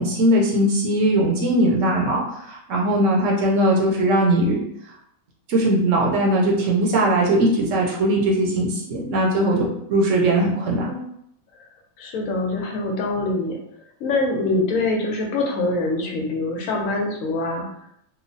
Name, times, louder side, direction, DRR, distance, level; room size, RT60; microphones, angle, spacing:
voice 1, 0.0-4.6 5.5-11.0, right 1 dB, 70° right, -2 dB, 0.9 m, -20 dB
voice 2, 12.0-13.6 14.0-17.7, left 2 dB, 75° left, 1 dB, 1.0 m, -24 dB
2.9 x 2.0 x 2.6 m, 0.72 s
omnidirectional pair, 1.5 m